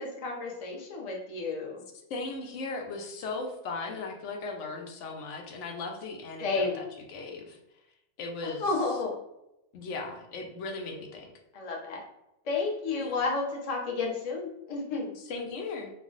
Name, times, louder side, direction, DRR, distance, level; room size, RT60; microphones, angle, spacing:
voice 1, 0.0-1.8 6.4-6.8 8.4-9.2 11.5-12.0 12.4-15.1, left 3 dB, 45° left, -1 dB, 0.5 m, -31 dB
voice 2, 2.1-7.6 8.2-8.7 9.7-11.3 13.0-13.1 15.3-15.9, left 3 dB, 75° left, 3 dB, 0.9 m, -37 dB
2.4 x 2.0 x 3.7 m, 0.87 s
omnidirectional pair, 1.3 m